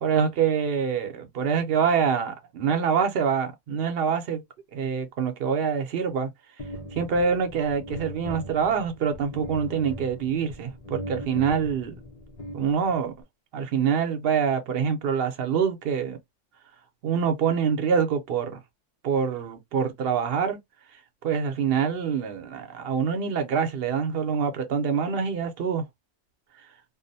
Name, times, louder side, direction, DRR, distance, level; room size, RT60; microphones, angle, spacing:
voice 1, 0.0-4.4 4.7-6.3 6.9-11.9 12.5-13.1 13.5-16.2 17.0-18.6 19.0-20.6 21.2-25.8, right 6 dB, 55° right, 0.8 m, -25 dB
sound 1, 6.6-13.2, equal, 40° left, 0.5 m, -39 dB
2.6 x 2.0 x 2.6 m
omnidirectional pair, 1.3 m